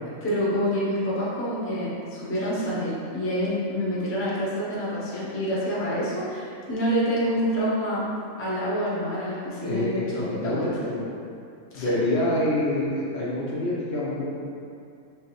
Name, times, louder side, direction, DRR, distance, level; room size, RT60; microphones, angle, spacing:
voice 1, 0.2-8.0 8.4-10.6 11.7-11.9, equal, 15° left, -8 dB, 0.6 m, -27 dB
voice 2, 9.6-11.1 11.7-14.4, left 1 dB, 60° left, -6 dB, 0.8 m, -26 dB
4.6 x 3.0 x 3.0 m, 2.4 s
omnidirectional pair, 1.4 m